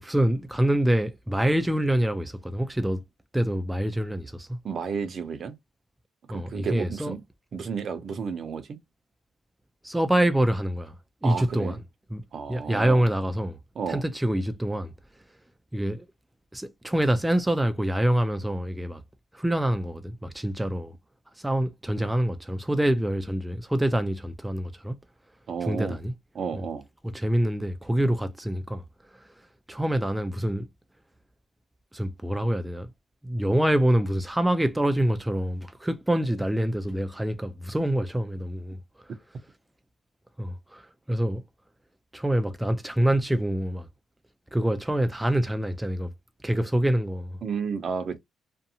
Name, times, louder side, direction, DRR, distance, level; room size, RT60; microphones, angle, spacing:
voice 1, 0.0-3.0 3.3-4.6 6.3-7.1 9.8-11.0 11.2-11.8 12.1-12.2 12.5-13.6 13.9-14.9 15.7-16.1 16.5-19.0 19.3-20.9 21.4-25.0 25.6-26.1 26.5-26.6 27.0-28.8 29.1-29.3 29.7-30.7 31.9-32.9 33.2-38.8 40.4-41.4 42.1-43.9 44.5-46.1 46.4-47.4, right 1 dB, 10° right, 0.4 m, -26 dB
voice 2, 4.6-5.6 6.3-7.2 7.5-8.8 11.2-11.8 12.3-13.0 13.8-14.0 25.5-26.0 26.3-26.8 47.4-48.2, right 6 dB, 55° right, 0.6 m, -32 dB
2.6 x 2.1 x 2.7 m
cardioid pair, 90°, 0 cm